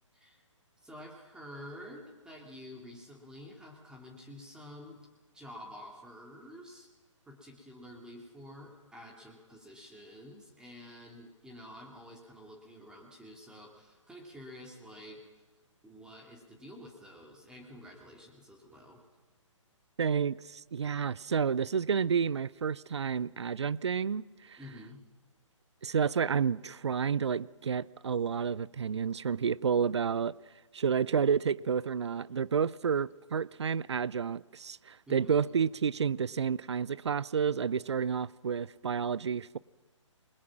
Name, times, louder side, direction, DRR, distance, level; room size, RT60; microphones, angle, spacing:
voice 1, 0.8-5.0 5.3-6.9 7.3-15.2 15.8-19.0 24.6-25.0 35.1-35.4, left 1 dB, 5° right, 2.8 m, -49 dB
voice 2, 20.0-24.6 25.8-30.4 30.7-39.6, right 6 dB, 60° right, 0.7 m, -30 dB
29.5 x 21.5 x 6.1 m
figure-of-eight pair, 135°, 16 cm